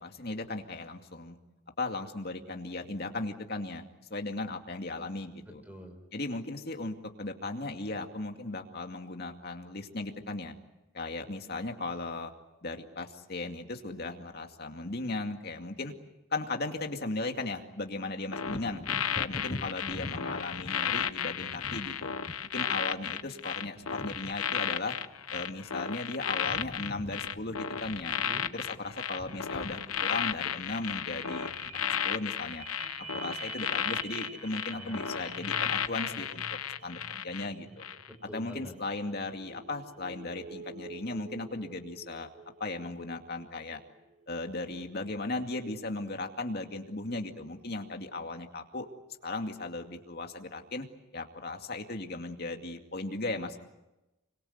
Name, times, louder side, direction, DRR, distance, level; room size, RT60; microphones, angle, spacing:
voice 1, 0.0-1.4 1.8-5.6 6.1-10.5 10.9-12.3 12.6-15.9 16.3-18.8 19.1-22.1 22.5-24.9 25.3-28.2 28.5-31.5 32.0-32.6 33.1-36.4 36.8-37.9 38.3-42.3 42.6-43.8 44.3-48.9 49.2-50.9 51.1-53.6, left 2 dB, 45° left, 4 dB, 2.4 m, -37 dB
voice 2, 5.4-6.0 28.1-28.5 34.7-35.2 38.1-38.7, equal, 5° right, 6 dB, 5.3 m, -46 dB
sound 1, 18.3-37.5 37.8-38.1, left 8 dB, 85° left, 1.0 m, -34 dB
Wind / Thunder, 18.4-26.0 26.3-33.5 33.9-34.1, left 1 dB, 30° left, 0.9 m, -46 dB
sound 2, 30.7-46.2 46.7-46.8, right 4 dB, 35° right, 1.2 m, -49 dB
27.0 x 24.5 x 8.1 m, 0.99 s
head